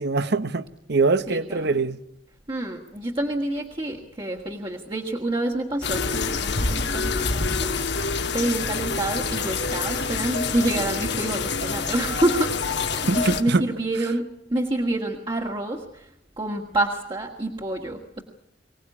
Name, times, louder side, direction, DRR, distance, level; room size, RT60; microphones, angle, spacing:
voice 1, 0.0-2.0 13.0-13.6, right 3 dB, 60° right, 1.0 m, -23 dB
voice 2, 1.3-1.9 2.5-16.1 16.4-18.2, right 1 dB, 25° right, 1.8 m, -28 dB
sound 1, 5.8-13.4, left 4 dB, 65° left, 1.8 m, -27 dB
24.5 x 18.0 x 9.8 m
head